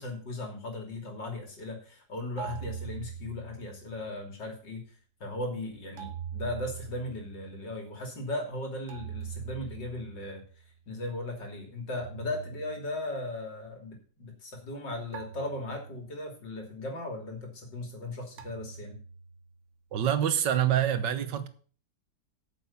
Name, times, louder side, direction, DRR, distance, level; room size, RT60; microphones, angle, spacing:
voice 1, 0.0-4.8 5.2-10.4 10.9-19.0, left 2 dB, 90° left, 3.5 m, -37 dB
sound 1, 2.4-4.2 6.0-7.8 8.9-10.7 12.0-13.4 15.1-16.4 18.4-19.6, right 8 dB, 50° right, 1.1 m, -43 dB
voice 2, 19.9-21.5, right 10 dB, 80° right, 1.7 m, -26 dB
8.7 x 6.9 x 7.1 m
omnidirectional pair, 1.9 m